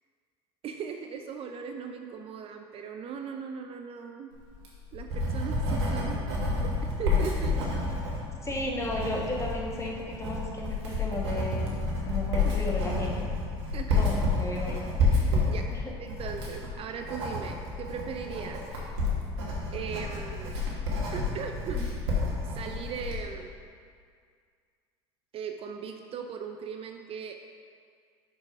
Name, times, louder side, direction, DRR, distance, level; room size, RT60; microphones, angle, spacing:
voice 1, 0.6-4.3 4.9-6.2 6.6-7.6 12.4-12.6 13.7-14.3 15.2-15.7 16.2-18.6 19.7-20.6 21.1-21.9 22.5-23.6 25.3-27.3, right 6 dB, 45° right, 5 dB, 0.5 m, -38 dB
Writing, 4.5-23.2, left 2 dB, 80° right, 1.6 m, -29 dB
voice 2, 8.4-11.8 12.0-13.3 13.9-14.8 15.7-15.9, left 1 dB, 20° left, -3 dB, 1.7 m, -34 dB
6.2 x 4.7 x 5.3 m, 2.1 s
hypercardioid pair, 80°, 14 cm